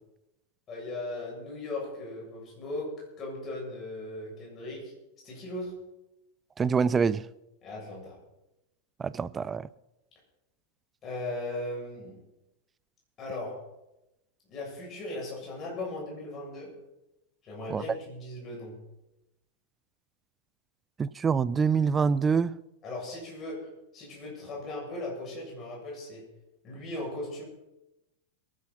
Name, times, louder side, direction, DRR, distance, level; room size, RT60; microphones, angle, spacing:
voice 1, 0.7-4.9 5.2-5.8 7.6-8.2 11.0-12.2 13.2-13.6 14.5-16.7 17.4-18.8 22.8-26.3 26.6-27.4, left 2 dB, 30° left, 7.9 m, -38 dB
voice 2, 6.6-7.2 9.0-9.7 17.7-17.8 21.0-22.6, right 6 dB, 20° right, 0.5 m, -25 dB
22.5 x 11.5 x 4.4 m
figure-of-eight pair, 90°, 0 cm